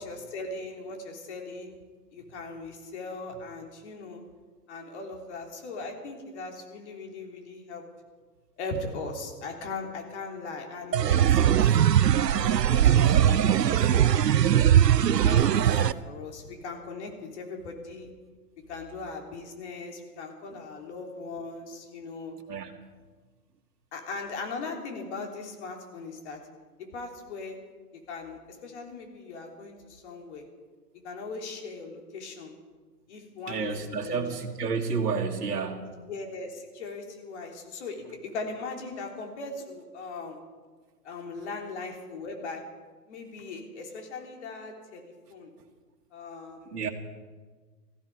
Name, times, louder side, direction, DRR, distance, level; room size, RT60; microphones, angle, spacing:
voice 1, 0.0-1.8 2.1-4.2 4.7-7.8 8.6-11.8 12.4-14.2 15.2-18.1 18.7-22.4 23.9-26.4 26.9-27.6 28.1-30.4 31.0-32.5 33.1-34.2 35.9-40.4 41.0-42.6 43.1-45.5 46.1-46.9, left 3 dB, 45° left, 2 dB, 3.4 m, -39 dB
sound 1, 10.9-15.9, right 10 dB, 85° right, 0.7 m, -20 dB
voice 2, 33.5-35.9 46.7-46.9, right 5 dB, 70° right, 1 dB, 2.1 m, -30 dB
19.5 x 15.0 x 4.9 m, 1.4 s
hypercardioid pair, 140°, 48 cm